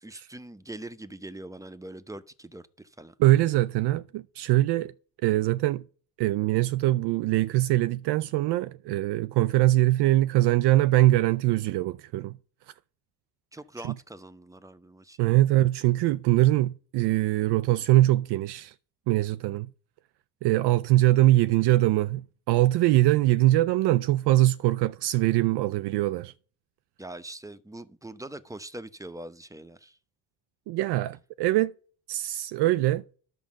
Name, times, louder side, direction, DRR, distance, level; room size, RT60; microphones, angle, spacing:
voice 1, 0.0-3.1 13.5-15.3 27.0-30.0, right 1 dB, 10° right, 0.8 m, -42 dB
voice 2, 3.2-4.9 5.2-5.8 6.2-12.3 15.2-18.7 19.1-19.7 20.4-22.2 22.5-26.3 30.7-31.7 32.1-33.0, right 16 dB, 70° right, 0.5 m, -22 dB
10.5 x 4.9 x 7.4 m
supercardioid pair, 80°, 42 cm